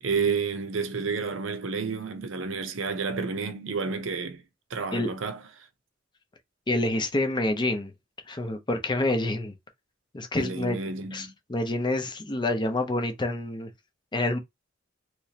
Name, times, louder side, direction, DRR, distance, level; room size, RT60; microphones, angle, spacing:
voice 1, 0.0-4.4 4.7-5.7 10.3-11.3, right 5 dB, 70° right, 0.7 m, -30 dB
voice 2, 6.7-7.9 8.3-9.5 10.1-10.8 11.1-13.7 14.1-14.4, left 2 dB, 25° left, 0.6 m, -27 dB
3.1 x 3.0 x 2.8 m
head